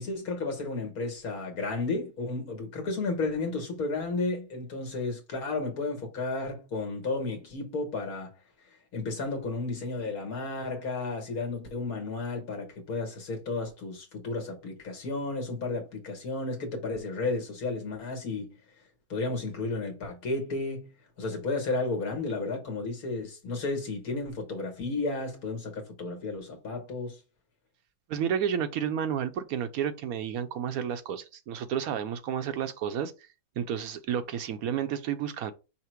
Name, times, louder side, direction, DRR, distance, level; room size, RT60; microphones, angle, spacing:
voice 1, 0.0-8.3 8.9-18.5 19.1-20.9 21.2-27.2, left 3 dB, 75° left, 1.8 m, -33 dB
voice 2, 28.1-33.1 33.6-35.5, right 8 dB, 75° right, 1.1 m, -31 dB
5.7 x 2.1 x 4.4 m
omnidirectional pair, 1.6 m